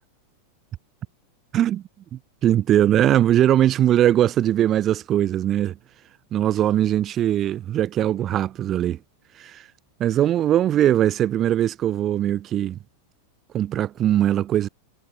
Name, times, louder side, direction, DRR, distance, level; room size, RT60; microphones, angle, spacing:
voice 1, 2.1-5.8 6.3-9.0 9.4-9.6 10.0-12.8 13.5-14.7, right 11 dB, 30° right, 0.7 m, -20 dB
figure-of-eight pair, 90°, 0 cm